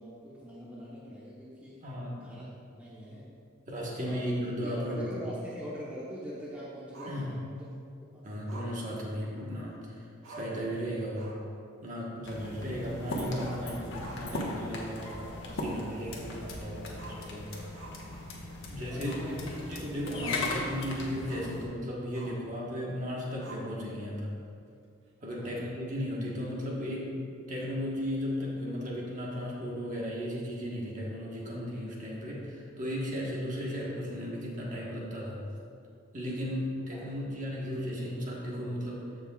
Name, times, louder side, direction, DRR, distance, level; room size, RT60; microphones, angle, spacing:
voice 1, 0.0-1.8 2.2-2.4 2.7-3.3 3.8-4.2 4.6-7.7 8.1-8.3 18.9-19.4 19.9-20.7 25.4-25.6 36.9-37.1, equal, 5° right, -8 dB, 1.0 m, -42 dB
voice 2, 1.8-2.4 3.7-5.1 7.0-7.3 8.2-11.4 11.8-17.5 18.7-24.4 25.2-35.4 36.1-39.1, equal, 35° right, -4 dB, 1.3 m, -35 dB
Growling, 6.9-7.7 8.5-9.7 10.0-10.1 10.2-10.7 11.0-11.5 11.8-11.9 13.3-14.5 14.8-14.9 15.5-15.6 16.9-18.5 19.0-19.3 19.6-20.6 21.2-21.6 22.1-22.5 23.4-24.0, right 1 dB, 75° right, 1.8 m, -48 dB
sound 1, 12.2-21.7, left 1 dB, 55° left, 1.3 m, -44 dB
sound 2, 13.0-16.6 16.9-17.0 17.2-17.6 17.9-18.0 18.2-18.4 18.6-18.7 19.0-20.9, left 2 dB, 85° left, 1.2 m, -37 dB
14.0 x 5.3 x 2.4 m, 2.4 s
head